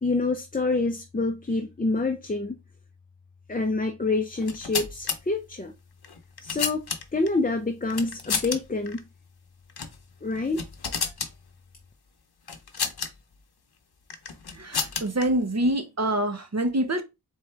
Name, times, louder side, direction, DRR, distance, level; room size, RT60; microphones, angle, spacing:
voice 1, 0.0-2.6 3.5-5.7 6.4-9.1 10.2-10.6, left 3 dB, 20° left, 0.6 m, -27 dB
sound 1, 4.4-5.2 6.0-7.3 7.9-8.6 8.9-9.0 9.7-10.0 10.3-11.3 12.5-13.1 14.1-15.2, left 6 dB, 65° left, 0.8 m, -30 dB
voice 2, 14.5-17.0, right 1 dB, 40° right, 0.9 m, -26 dB
4.2 x 3.7 x 3.3 m
wide cardioid pair, 60°, 42 cm